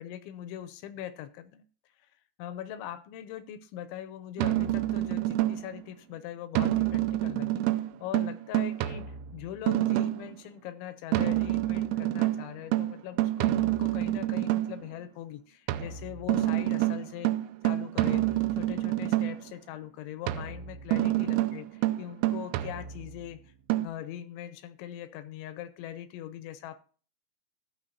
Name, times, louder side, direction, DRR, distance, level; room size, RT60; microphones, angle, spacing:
voice 1, 0.0-1.6 2.0-2.1 2.4-17.3 17.6-26.8, left 11 dB, 80° left, 12 dB, 2.8 m, -41 dB
sound 1, 4.4-5.8 6.5-10.3 11.1-14.8 15.7-19.5 20.3-23.2 23.7-23.9, right 14 dB, 85° right, 2.7 m, -28 dB
16.0 x 6.8 x 2.7 m, 0.40 s
omnidirectional pair, 5.7 m